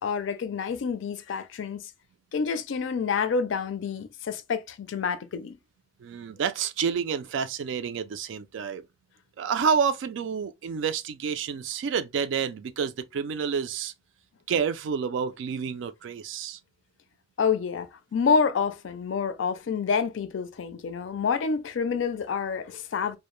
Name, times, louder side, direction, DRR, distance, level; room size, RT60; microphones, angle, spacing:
voice 1, 0.0-1.9 2.3-5.5 17.4-23.2, left 5 dB, 75° left, 0.4 m, -28 dB
voice 2, 6.0-8.8 9.4-13.9 14.5-16.6, right 6 dB, 70° right, 0.3 m, -29 dB
2.1 x 2.0 x 3.0 m
head